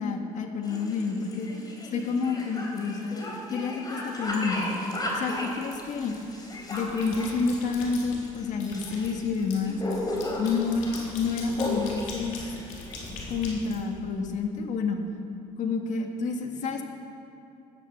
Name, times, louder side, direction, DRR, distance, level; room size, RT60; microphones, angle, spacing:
voice 1, 0.0-1.5 1.9-4.7 5.1-6.2 6.7-9.8 10.4-12.4 13.3-15.0 15.6-16.8, left 4 dB, 60° left, 4 dB, 1.9 m, -29 dB
sound 1, 0.6-13.1, left 1 dB, 30° left, 3.8 m, -35 dB
sound 2, 5.7-6.2 6.6-8.2 8.6-14.4, left 2 dB, 85° left, 4.2 m, -41 dB
18.0 x 11.5 x 7.0 m, 2.6 s
cardioid pair, 130°, 14 cm